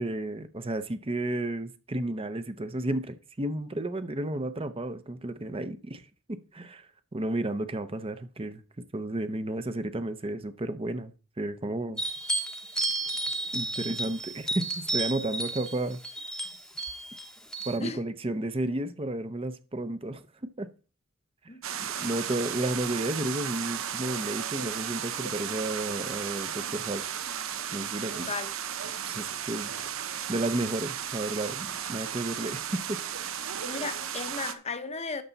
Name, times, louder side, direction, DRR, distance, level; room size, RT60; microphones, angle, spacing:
voice 1, 0.0-6.0 6.3-6.9 7.1-8.6 8.9-12.0 13.5-16.0 17.6-20.7 22.0-27.0 27.7-28.3 29.0-29.7 30.3-33.0 33.2-33.5, right 1 dB, 30° right, 0.7 m, -32 dB
sound 1, 12.0-17.8, right 2 dB, 5° left, 0.8 m, -32 dB
sound 2, 21.6-34.5, right 9 dB, 90° right, 0.9 m, -34 dB
voice 2, 28.1-28.5 33.6-35.2, left 4 dB, 30° left, 0.8 m, -35 dB
11.5 x 6.8 x 4.0 m
head